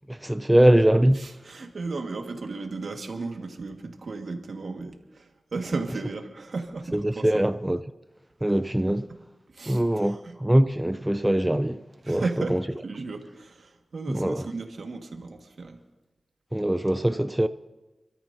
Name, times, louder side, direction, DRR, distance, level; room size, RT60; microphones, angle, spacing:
voice 1, 0.1-1.2 6.9-7.8 8.4-9.0 9.7-11.8 12.1-12.2 12.5-12.6 14.1-14.4 16.5-17.5, right 1 dB, 15° right, 0.5 m, -22 dB
voice 2, 1.1-7.3 8.9-9.0 9.5-10.4 12.0-12.6 12.8-15.8, right 3 dB, 80° right, 1.7 m, -35 dB
28.5 x 13.5 x 2.7 m
wide cardioid pair, 65°, 0 cm